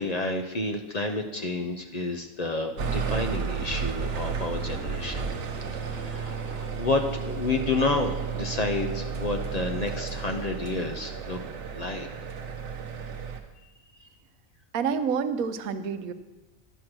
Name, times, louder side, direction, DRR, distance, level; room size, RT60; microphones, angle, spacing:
voice 1, 0.0-5.3 5.8-11.4 11.7-12.1, left 3 dB, 45° left, 5 dB, 0.5 m, -30 dB
sound 1, 2.8-13.4, right 6 dB, 60° right, 1.1 m, -32 dB
voice 2, 14.7-16.1, right 6 dB, 90° right, 10 dB, 1.1 m, -28 dB
11.0 x 6.4 x 6.0 m, 1.1 s
omnidirectional pair, 1.4 m